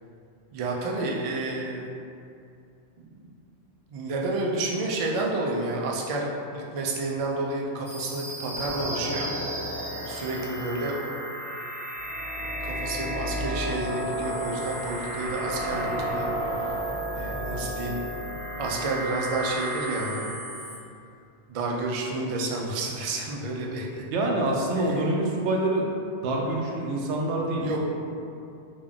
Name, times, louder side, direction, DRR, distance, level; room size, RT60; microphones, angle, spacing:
voice 1, 0.5-1.9 3.0-3.1 3.9-9.8 10.1-11.2 12.6-16.3 17.1-18.0 18.6-20.2 21.5-24.0 24.8-25.0 27.6-27.8, right 2 dB, 65° right, -2 dB, 0.3 m, -30 dB
sound 1, 7.8-20.8, equal, 40° left, 1.3 m, -32 dB
voice 2, 24.1-25.9 26.2-27.7, right 1 dB, 85° right, -1 dB, 0.9 m, -26 dB
3.6 x 2.3 x 3.5 m, 2.6 s
omnidirectional pair, 1.1 m